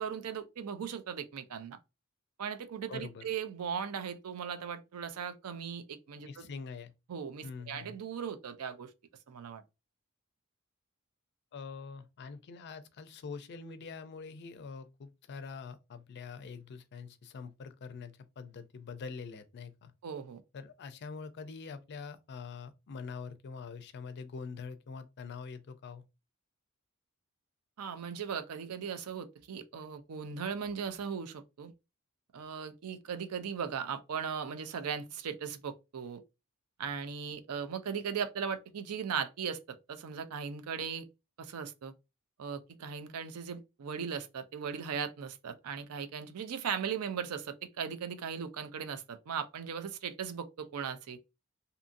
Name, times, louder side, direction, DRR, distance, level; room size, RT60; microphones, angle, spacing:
voice 1, 0.0-1.8 2.4-6.5 7.1-8.9 9.3-9.6 20.0-20.4 27.8-31.7 32.3-36.2 36.8-41.1 41.4-41.9 42.4-51.2, right 7 dB, 85° right, 0.4 m, -38 dB
voice 2, 2.9-3.2 6.2-6.9 7.4-8.0 11.5-19.9 20.5-26.0, left 5 dB, 50° left, 0.4 m, -44 dB
2.7 x 2.6 x 2.5 m
head